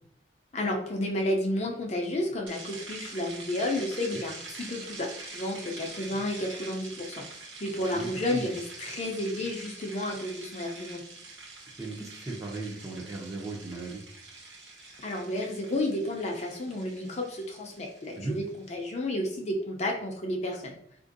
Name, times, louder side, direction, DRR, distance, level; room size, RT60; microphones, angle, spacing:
voice 1, 0.5-7.3 7.6-11.0 15.0-20.8, left 1 dB, 35° left, 0 dB, 0.5 m, -31 dB
sound 1, 2.5-18.7, right 3 dB, 85° right, 0.9 m, -45 dB
voice 2, 7.9-8.6 11.8-14.0 18.2-18.3, right 2 dB, 15° right, 0 dB, 0.6 m, -37 dB
3.8 x 2.5 x 2.5 m, 0.69 s
head